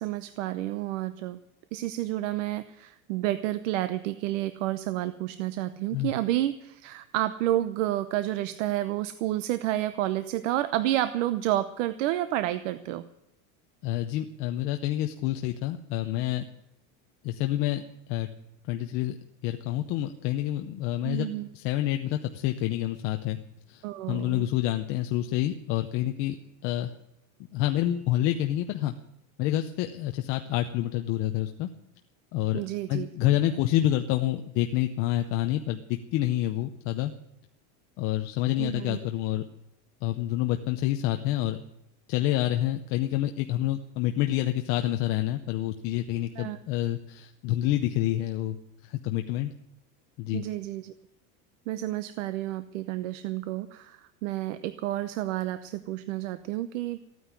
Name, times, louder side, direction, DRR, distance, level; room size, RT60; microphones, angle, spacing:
voice 1, 0.0-1.4 1.7-13.0 21.0-21.5 23.8-24.4 32.5-33.1 38.6-39.0 46.4-46.6 50.3-50.9 51.7-57.0, right 14 dB, 60° right, 13 dB, 0.8 m, -30 dB
voice 2, 13.8-16.4 17.2-17.8 18.1-18.3 18.7-19.2 19.4-21.3 21.5-23.4 23.7-26.4 26.6-26.9 27.5-28.9 29.4-31.7 32.3-32.6 32.9-37.1 38.0-39.4 40.0-41.6 42.1-48.6 48.8-49.5 50.2-50.4, left 14 dB, 30° left, 6 dB, 0.6 m, -28 dB
15.0 x 9.4 x 9.6 m, 0.83 s
supercardioid pair, 175°, 42 cm